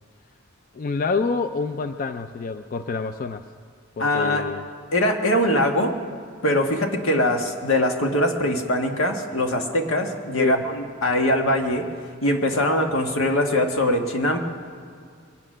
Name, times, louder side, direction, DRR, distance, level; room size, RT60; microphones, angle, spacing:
voice 1, 0.7-3.4 4.0-4.6 10.4-10.6, left 4 dB, 40° left, 9 dB, 0.4 m, -27 dB
voice 2, 4.0-4.4 4.9-6.0 6.4-11.9 12.2-14.4, left 1 dB, 90° left, 3 dB, 1.5 m, -22 dB
22.5 x 8.8 x 6.2 m, 2.2 s
head